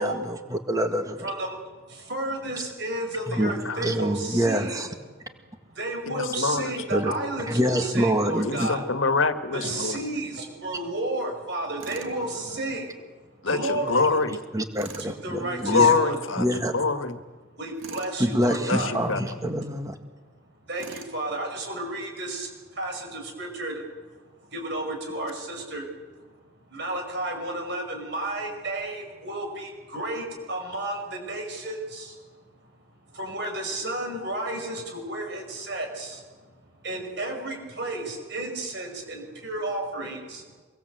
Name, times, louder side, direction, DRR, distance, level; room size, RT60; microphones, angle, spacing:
voice 1, 0.0-1.3 3.3-4.9 6.9-7.1 7.5-8.7 14.5-15.9 16.4-16.8 18.2-20.0, equal, 15° right, 6 dB, 1.9 m, -26 dB
voice 2, 1.2-1.6 1.9-4.8 5.8-8.8 9.5-12.9 13.5-14.1 15.0-16.2 17.6-18.9 20.7-23.9 24.4-25.9 26.7-32.2 33.1-36.4 36.8-40.5, right 2 dB, 55° right, 3 dB, 5.7 m, -32 dB
voice 3, 3.4-3.8 6.1-6.7 8.4-10.0 13.4-14.4 15.7-16.4 16.7-17.2 18.7-19.2, left 4 dB, 80° left, 9 dB, 1.6 m, -24 dB
Tools, 11.8-12.2 14.7-15.1 17.8-18.2 20.8-21.2, right 4 dB, 90° right, 2.4 m, -41 dB
24.5 x 23.0 x 7.9 m, 1.3 s
head